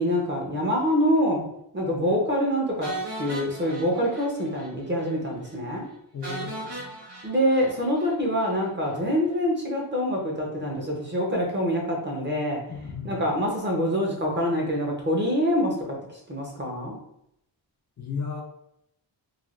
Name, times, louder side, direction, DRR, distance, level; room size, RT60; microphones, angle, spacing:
voice 1, 0.0-1.5 1.7-2.9 3.2-5.9 7.2-12.6 13.0-16.0 16.3-17.0, equal, 25° right, -1 dB, 0.6 m, -25 dB
sound 1, 2.8-4.7 5.0-5.1 5.4-5.5 6.2-8.5, right 1 dB, 55° right, 1.2 m, -37 dB
voice 2, 6.1-6.9 12.7-13.2 18.0-18.4, left 4 dB, 40° left, -1 dB, 0.5 m, -34 dB
3.2 x 2.3 x 2.4 m, 0.75 s
wide cardioid pair, 115°, 47 cm